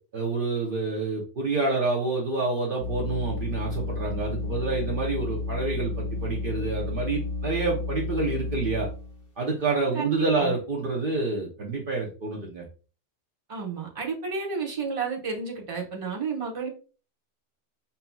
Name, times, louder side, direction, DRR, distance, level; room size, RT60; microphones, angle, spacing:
voice 1, 0.1-8.9 9.4-12.6, right 3 dB, 55° right, -2 dB, 1.0 m, -28 dB
sound 1, 2.8-9.3, left 3 dB, 55° left, 1.0 m, -32 dB
voice 2, 9.9-10.6 13.5-16.7, right 5 dB, 30° right, -1 dB, 1.0 m, -31 dB
5.6 x 2.8 x 2.2 m, 0.36 s
omnidirectional pair, 1.1 m